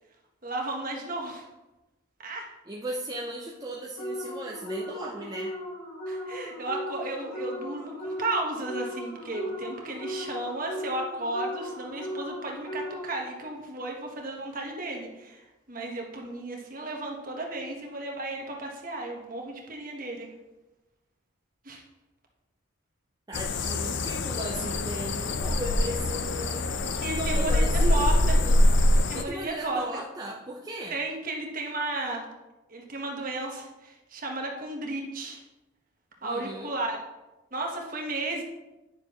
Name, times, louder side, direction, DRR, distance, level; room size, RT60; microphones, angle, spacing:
voice 1, 0.4-1.5 2.2-2.5 6.1-20.3 21.6-21.8 27.0-27.6 27.9-28.4 28.9-29.8 30.9-32.3 32.7-35.4 36.2-37.0 37.5-38.4, right 2 dB, 40° right, 1 dB, 1.3 m, -34 dB
voice 2, 2.7-5.5 23.3-26.6 27.2-28.6 29.1-31.0 36.2-36.7, right 1 dB, 20° right, -3 dB, 0.6 m, -36 dB
sound 1, 4.0-13.4, equal, 90° left, 2.5 m, -37 dB
sound 2, 23.3-29.2, left 1 dB, 55° left, 0.5 m, -24 dB
9.7 x 6.5 x 3.0 m, 1.0 s
head